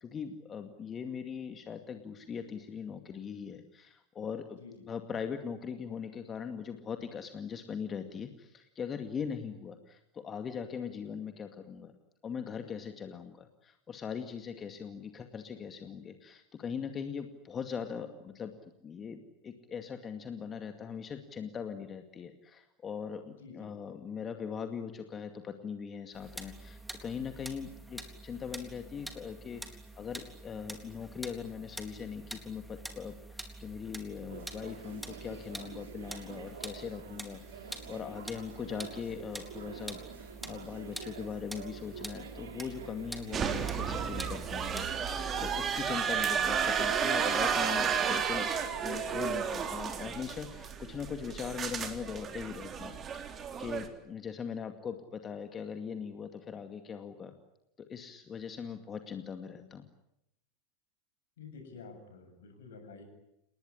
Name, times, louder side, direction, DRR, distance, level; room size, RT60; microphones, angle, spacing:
voice 1, 0.0-4.6 4.9-11.9 12.2-18.5 18.8-48.5 48.8-53.3 53.6-57.3 57.9-59.8, left 7 dB, 25° left, 7 dB, 2.2 m, -40 dB
voice 2, 23.4-23.7 43.2-43.4 61.4-63.0, left 5 dB, 65° left, 6 dB, 7.9 m, -50 dB
sound 1, 26.1-44.9, right 1 dB, 5° right, 3.8 m, -46 dB
sound 2, 34.3-49.4, right 7 dB, 70° right, 3.1 m, -48 dB
sound 3, 43.3-53.9, right 7 dB, 30° right, 3.7 m, -32 dB
29.5 x 20.0 x 10.0 m, 0.85 s
figure-of-eight pair, 85°, 0 cm